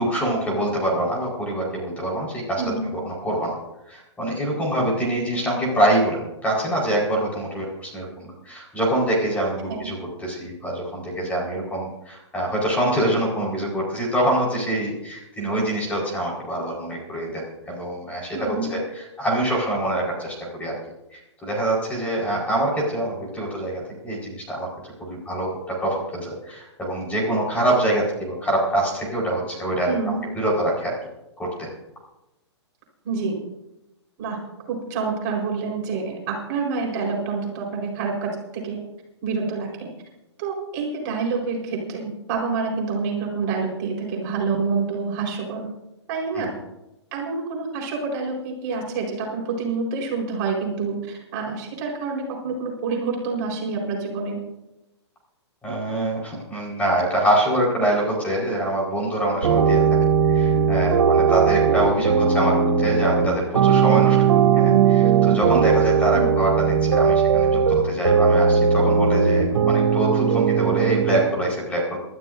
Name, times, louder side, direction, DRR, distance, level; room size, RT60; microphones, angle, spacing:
voice 1, 0.0-2.6 3.0-3.6 3.8-20.8 21.1-29.9 30.3-30.9 31.4-31.7 55.6-59.8 60.2-72.0, right 1 dB, 10° left, -3 dB, 4.8 m, -25 dB
voice 2, 2.5-2.9 9.7-9.8 18.3-18.8 29.8-30.3 33.0-33.4 34.2-34.4 34.7-38.8 39.2-39.9 40.4-45.7 46.1-46.5 47.1-54.4 66.1-66.3, right 4 dB, 40° right, -1 dB, 4.7 m, -27 dB
sound 1, 59.4-71.2, right 6 dB, 85° right, 2.6 m, -18 dB
27.5 x 13.0 x 2.7 m, 0.92 s
hypercardioid pair, 150°, 15 cm